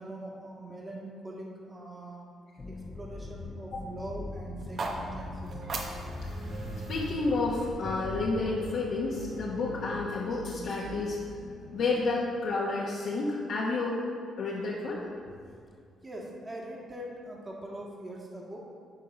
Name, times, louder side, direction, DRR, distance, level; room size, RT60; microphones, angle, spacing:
voice 1, 0.0-2.3 2.7-5.6 16.0-18.6, right 1 dB, 25° right, -2 dB, 1.7 m, -42 dB
sound 1, 2.6-8.3, left 2 dB, 25° left, 0.8 m, -41 dB
sound 2, 4.6-8.7, right 3 dB, 55° right, 1.0 m, -41 dB
Piano, 4.7-11.8, right 1 dB, 80° right, 2.0 m, -43 dB
voice 2, 6.9-11.2 11.7-14.0 14.4-15.0, left 3 dB, 70° left, -5 dB, 1.1 m, -30 dB
9.7 x 3.7 x 5.8 m, 2.3 s
cardioid pair, 90°, 0 cm